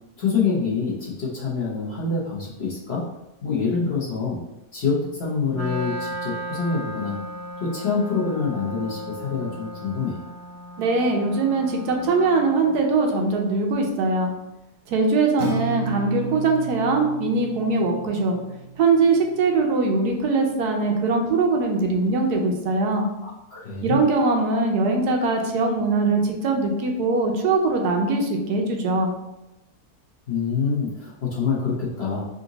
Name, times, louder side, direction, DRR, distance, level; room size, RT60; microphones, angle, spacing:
voice 1, 0.2-3.0 3.4-4.4 4.7-7.2 7.6-10.2 23.2-24.0 30.3-32.2, left 5 dB, 45° left, -5 dB, 1.0 m, -26 dB
Wind instrument woodwind instrument, 5.5-12.7, right 1 dB, 15° right, 0.5 m, -35 dB
voice 2, 10.8-14.3 14.9-18.4 18.8-23.1 23.8-29.1, right 3 dB, 75° right, 2 dB, 1.2 m, -21 dB
Acoustic guitar, 15.4-19.6, right 5 dB, 60° right, 0.7 m, -33 dB
3.8 x 2.5 x 3.9 m, 0.94 s
omnidirectional pair, 1.7 m